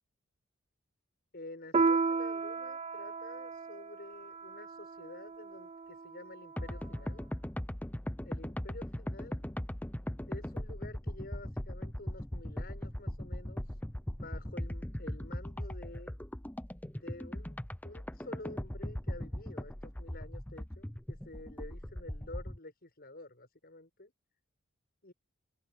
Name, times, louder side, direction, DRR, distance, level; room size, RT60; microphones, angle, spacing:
voice 1, 1.3-7.3 8.2-9.5 10.3-13.8 14.1-16.1 16.9-24.1 25.0-25.1, left 2 dB, 50° left, 7.3 m, -50 dB
Piano, 1.7-6.7, right 4 dB, 30° right, 0.5 m, -34 dB
sound 1, 6.6-22.6, equal, 10° left, 0.8 m, -39 dB
open air
head